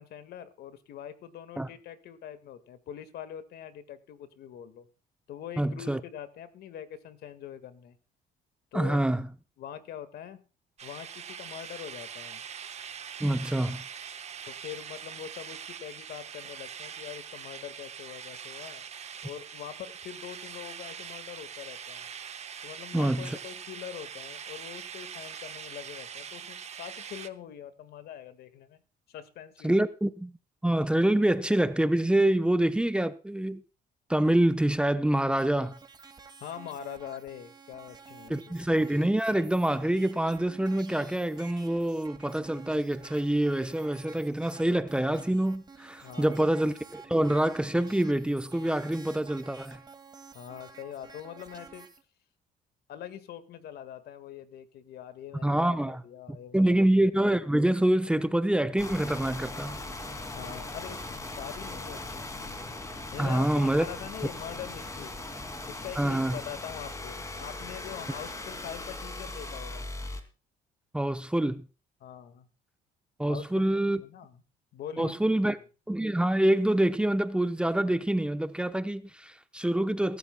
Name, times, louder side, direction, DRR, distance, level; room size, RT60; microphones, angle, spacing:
voice 1, 0.0-4.9 5.3-7.9 8.7-9.0 9.6-10.4 10.8-12.4 14.5-18.8 19.2-22.1 22.6-28.8 29.1-29.8 36.4-38.5 46.0-46.5 50.3-51.9 52.9-57.0 60.3-62.5 63.1-65.2 65.7-69.9 72.0-72.5 73.2-74.4 74.7-75.6, left 9 dB, 70° left, 1.8 m, -43 dB
voice 2, 5.6-6.0 8.7-9.3 13.2-13.8 22.9-23.4 29.6-30.3 30.6-33.6 34.1-35.8 38.3-49.8 55.4-56.0 56.5-59.8 63.2-63.8 66.0-66.4 70.9-71.7 73.2-74.0 75.0-75.6 75.9-80.2, right 1 dB, 5° right, 0.8 m, -26 dB
sound 1, 10.8-27.3, right 8 dB, 40° right, 1.1 m, -43 dB
sound 2, 35.3-52.0, right 5 dB, 25° right, 2.2 m, -51 dB
sound 3, 58.8-70.2, left 2 dB, 20° left, 2.5 m, -39 dB
23.0 x 12.5 x 2.2 m
cardioid pair, 110°, 17 cm